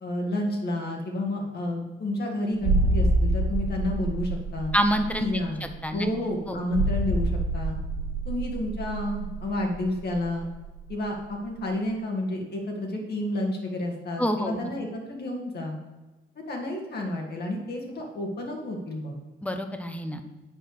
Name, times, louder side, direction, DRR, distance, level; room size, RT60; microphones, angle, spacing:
voice 1, 0.0-4.7 5.2-5.6 5.9-7.8 8.3-10.5 10.9-15.8 16.5-19.2, left 1 dB, 55° left, 0 dB, 2.0 m, -30 dB
sound 1, 2.6-11.0 11.3-11.4, right 2 dB, 75° right, 1.1 m, -27 dB
voice 2, 4.7-5.3 5.6-6.1 6.5-6.6 14.2-14.7 19.4-20.2, equal, 5° left, 7 dB, 0.9 m, -27 dB
8.0 x 4.5 x 6.5 m, 1.1 s
cardioid pair, 90°, 20 cm